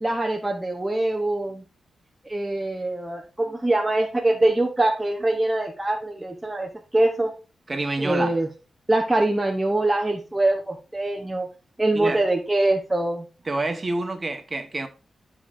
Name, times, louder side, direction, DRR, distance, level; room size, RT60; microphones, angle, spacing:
voice 1, 0.0-1.6 2.3-7.3 8.0-8.5 8.9-11.5 11.8-13.2, right 2 dB, 15° right, 0.8 m, -23 dB
voice 2, 7.7-8.4 11.9-12.2 13.4-14.9, right 2 dB, 30° right, 1.2 m, -27 dB
11.0 x 4.9 x 2.6 m
cardioid pair, 95°, 0 cm